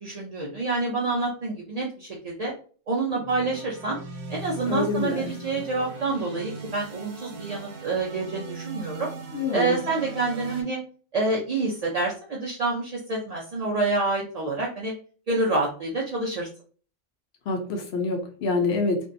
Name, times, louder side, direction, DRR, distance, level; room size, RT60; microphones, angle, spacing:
voice 1, 0.0-2.5 2.9-4.0 4.3-9.1 9.5-10.8 11.1-14.9 15.3-16.5, right 3 dB, 60° right, -4 dB, 0.4 m, -27 dB
sound 1, 3.1-10.6, right 3 dB, 85° right, 1.1 m, -39 dB
voice 2, 4.7-5.2 9.3-9.8 17.5-19.0, left 3 dB, 60° left, 3 dB, 0.8 m, -26 dB
2.6 x 2.2 x 2.5 m, 0.41 s
omnidirectional pair, 1.3 m